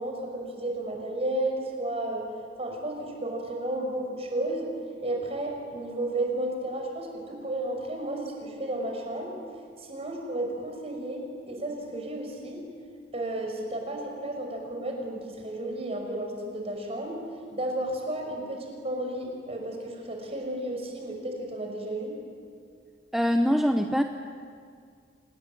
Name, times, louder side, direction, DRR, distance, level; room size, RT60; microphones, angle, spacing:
voice 1, 0.0-2.2 2.6-4.7 5.0-9.4 9.8-12.6 13.1-17.2 17.5-22.2, right 1 dB, 35° right, 2 dB, 5.6 m, -33 dB
voice 2, 23.1-24.0, equal, ahead, 5 dB, 0.8 m, -23 dB
27.5 x 20.0 x 9.2 m, 2.2 s
head